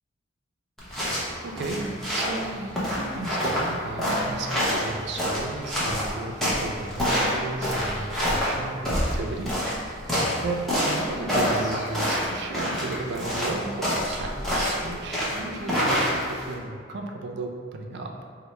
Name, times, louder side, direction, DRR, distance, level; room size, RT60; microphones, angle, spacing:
sound 1, 0.8-16.5, equal, ahead, 0.6 m, -27 dB
voice 1, 1.4-9.5 9.9-10.1 10.4-18.1, right 3 dB, 60° right, 3 dB, 0.4 m, -34 dB
4.2 x 2.0 x 3.1 m, 2.1 s
head